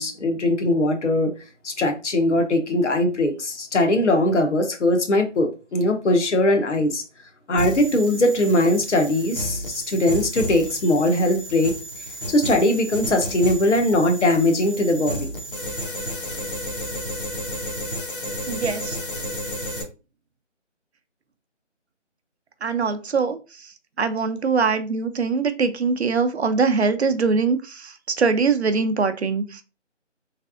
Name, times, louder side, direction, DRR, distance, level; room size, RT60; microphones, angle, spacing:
voice 1, 0.0-1.3 1.6-7.0 7.5-11.7 12.3-15.3, left 1 dB, 70° left, 0.9 m, -20 dB
sound 1, 7.6-19.8, equal, 45° left, 0.8 m, -32 dB
voice 2, 18.5-19.0 22.6-23.4 24.0-29.4, right 4 dB, 60° right, 0.6 m, -22 dB
3.3 x 3.3 x 2.5 m
figure-of-eight pair, 170°, 37 cm